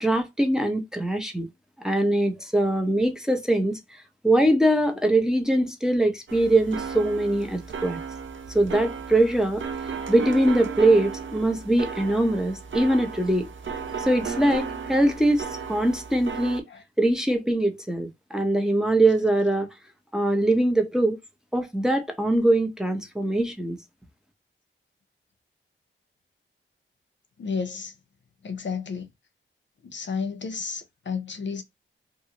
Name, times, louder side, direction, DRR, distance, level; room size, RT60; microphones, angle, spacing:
voice 1, 0.0-1.5 1.8-3.8 4.2-8.0 8.5-9.6 10.1-13.5 14.0-16.6 17.0-19.7 20.1-21.2 21.5-23.8, right 1 dB, 5° right, 0.7 m, -22 dB
sound 1, 6.3-16.6, right 6 dB, 65° right, 0.6 m, -35 dB
voice 2, 27.4-27.9 28.4-29.1 29.8-31.6, left 5 dB, 60° left, 0.6 m, -32 dB
2.6 x 2.5 x 2.8 m
wide cardioid pair, 90°, 21 cm